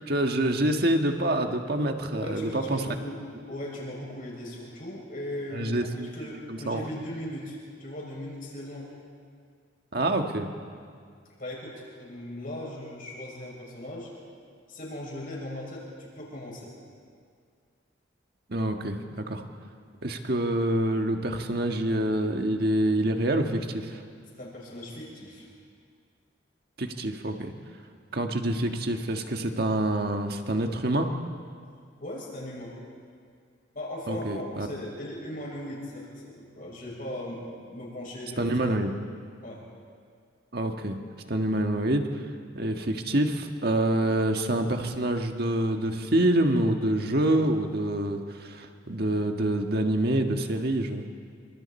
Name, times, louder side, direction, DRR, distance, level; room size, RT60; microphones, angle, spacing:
voice 1, 0.1-2.8 5.5-5.9 6.5-6.8 9.9-10.5 18.5-19.4 20.0-24.0 26.8-27.5 28.1-31.1 34.1-34.7 38.4-38.9 40.5-41.0 41.3-42.1 42.5-51.0, right 1 dB, 55° right, 4 dB, 1.6 m, -26 dB
voice 2, 2.2-8.9 11.4-14.1 14.7-16.7 24.4-25.5 32.0-32.7 33.7-38.4 39.4-39.7, left 1 dB, 45° left, -3 dB, 6.8 m, -38 dB
27.5 x 26.0 x 4.4 m, 2.2 s
head